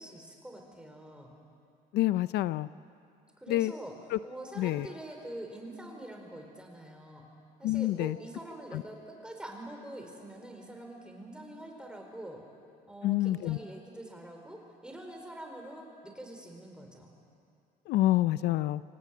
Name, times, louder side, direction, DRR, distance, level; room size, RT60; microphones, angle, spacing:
voice 1, 0.0-1.4 3.4-3.9 4.2-7.2 7.6-12.4 12.9-17.1, right 1 dB, 5° right, 2 dB, 4.7 m, -45 dB
voice 2, 1.9-2.7 3.5-3.7 4.1-4.2 4.6-4.9 7.6-8.2 8.7-8.8 13.0-13.6 17.9-18.8, left 15 dB, 80° left, 16 dB, 0.5 m, -27 dB
25.5 x 18.5 x 8.5 m, 2.4 s
cardioid pair, 110°, 17 cm